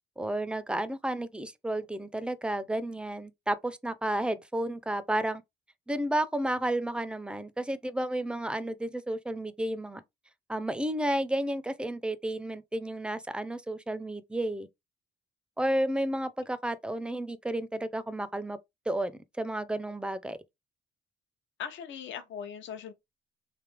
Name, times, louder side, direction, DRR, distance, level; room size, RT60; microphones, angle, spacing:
voice 1, 0.2-5.4 5.9-10.0 10.5-14.7 15.6-18.6 18.9-19.1 19.4-20.4, right 1 dB, 5° right, 0.5 m, -32 dB
voice 2, 21.6-22.9, left 8 dB, 70° left, 0.8 m, -39 dB
3.3 x 2.7 x 3.4 m
cardioid pair, 90°, 20 cm